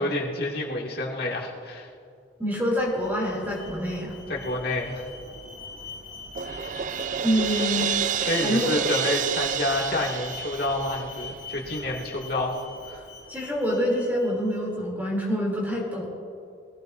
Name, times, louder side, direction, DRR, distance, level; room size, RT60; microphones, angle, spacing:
voice 1, 0.0-1.9 4.3-5.0 8.2-12.6 12.9-13.0, left 1 dB, 55° left, -2 dB, 2.2 m, -28 dB
voice 2, 2.4-4.2 7.2-7.9 8.4-8.7 13.3-16.1, equal, 10° right, -4 dB, 3.0 m, -26 dB
Alarm, 2.5-14.6, left 3 dB, 65° right, 2.7 m, -42 dB
Crash cymbal, 6.4-11.3, right 8 dB, 45° right, 0.3 m, -29 dB
21.5 x 16.0 x 2.6 m, 2.4 s
head